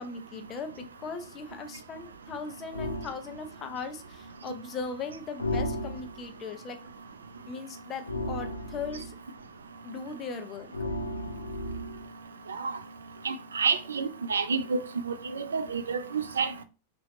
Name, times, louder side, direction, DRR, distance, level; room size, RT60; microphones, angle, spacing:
voice 1, 0.0-6.8 7.5-9.2 9.8-10.7, left 4 dB, 30° left, 0.8 m, -38 dB
sound 1, 2.7-3.2 5.4-6.3 8.1-9.2 10.7-12.1, left 1 dB, 80° left, 0.6 m, -34 dB
voice 2, 13.2-14.8 15.4-16.6, right 5 dB, 70° right, 0.4 m, -29 dB
5.7 x 2.7 x 3.1 m
figure-of-eight pair, 90°, 0 cm